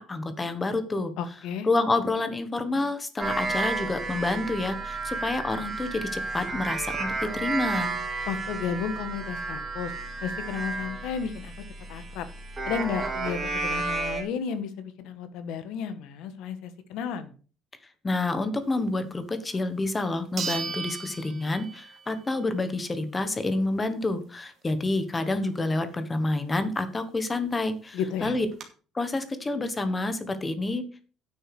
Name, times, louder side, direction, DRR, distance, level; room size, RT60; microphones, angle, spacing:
voice 1, 0.0-1.1 1.6-7.9 18.0-28.5 28.9-30.9, left 2 dB, 15° left, 10 dB, 1.3 m, -28 dB
voice 2, 1.2-1.7 8.3-9.9 10.2-11.5 11.9-12.3 12.6-17.3 27.9-28.3, left 7 dB, 75° left, 11 dB, 1.6 m, -33 dB
sound 1, 3.2-14.2, right 3 dB, 20° right, 3.7 m, -32 dB
sound 2, 19.5-19.6 20.4-22.1 22.5-22.6 27.2-27.3 27.5-27.6 28.2-28.6, right 5 dB, 40° right, 2.4 m, -35 dB
9.9 x 6.6 x 6.1 m, 0.39 s
cardioid pair, 170°, 0 cm